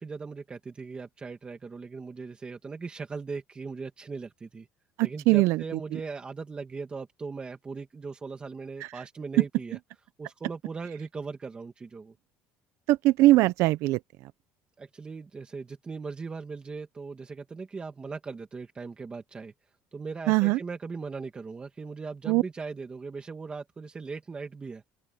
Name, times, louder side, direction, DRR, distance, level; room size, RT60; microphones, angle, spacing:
voice 1, 0.0-4.7 5.0-9.8 10.2-12.2 14.8-19.5 19.9-24.8, right 4 dB, 20° right, 1.7 m, -39 dB
voice 2, 5.0-5.6 12.9-14.0 20.3-20.6 22.3-22.4, right 18 dB, 70° right, 0.6 m, -21 dB
open air
cardioid pair, 140°, 5 cm